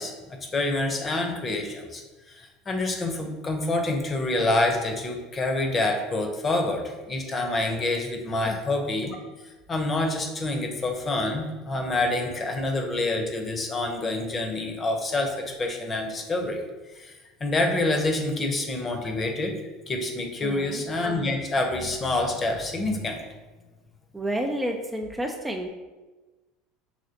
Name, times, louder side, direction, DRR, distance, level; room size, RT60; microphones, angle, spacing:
voice 1, 0.0-2.0 2.3-9.2 9.4-19.6 19.9-23.2, left 2 dB, 30° left, 3 dB, 0.8 m, -27 dB
voice 2, 20.4-20.8 24.1-25.7, right 1 dB, 10° right, 2 dB, 0.4 m, -30 dB
5.0 x 3.0 x 2.9 m, 1.2 s
hypercardioid pair, 85°, 0 cm